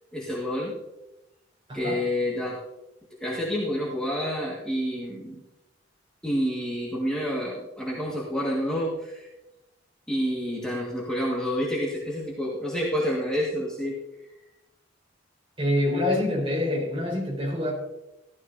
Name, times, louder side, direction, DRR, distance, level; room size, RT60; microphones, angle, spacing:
voice 1, 0.1-0.7 1.7-2.6 3.2-5.4 6.2-9.3 10.1-14.0, equal, 5° left, -6 dB, 1.7 m, -28 dB
voice 2, 1.7-2.0 15.6-17.7, left 1 dB, 30° right, -2 dB, 4.6 m, -26 dB
15.0 x 12.5 x 2.7 m, 0.96 s
head